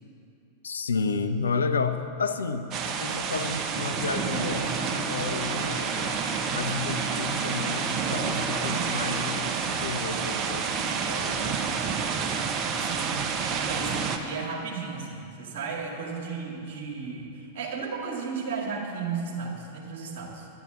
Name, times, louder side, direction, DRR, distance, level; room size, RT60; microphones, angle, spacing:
voice 1, 0.6-6.2 6.5-11.6, left 5 dB, 75° left, 9 dB, 0.5 m, -32 dB
sound 1, 2.7-14.2, right 5 dB, 35° right, 0.9 m, -29 dB
voice 2, 12.8-13.2 13.5-20.5, right 5 dB, 55° right, 0 dB, 2.1 m, -34 dB
11.0 x 10.5 x 5.0 m, 2.7 s
figure-of-eight pair, 90°, 0 cm